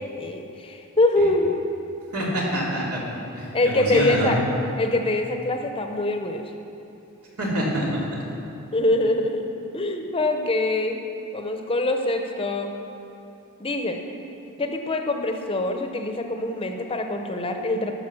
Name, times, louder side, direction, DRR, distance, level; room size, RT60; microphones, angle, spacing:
voice 1, 0.0-1.5 3.5-4.4 4.8-6.4 8.7-9.5 9.7-11.0 11.3-12.7 13.6-14.0 14.6-17.9, left 2 dB, 25° left, 5 dB, 0.7 m, -24 dB
voice 2, 2.1-3.0 3.3-4.3 7.4-7.9, right 1 dB, 90° right, -4 dB, 2.8 m, -26 dB
13.5 x 6.7 x 6.2 m, 2.7 s
head